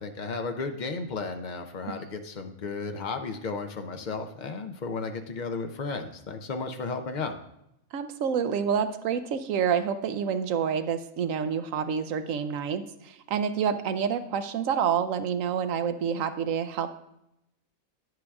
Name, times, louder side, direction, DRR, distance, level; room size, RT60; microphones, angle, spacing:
voice 1, 0.0-7.4, left 4 dB, 60° left, 6 dB, 0.5 m, -34 dB
voice 2, 7.9-17.0, right 7 dB, 70° right, 10 dB, 0.9 m, -28 dB
9.7 x 7.7 x 2.3 m, 0.82 s
omnidirectional pair, 1.5 m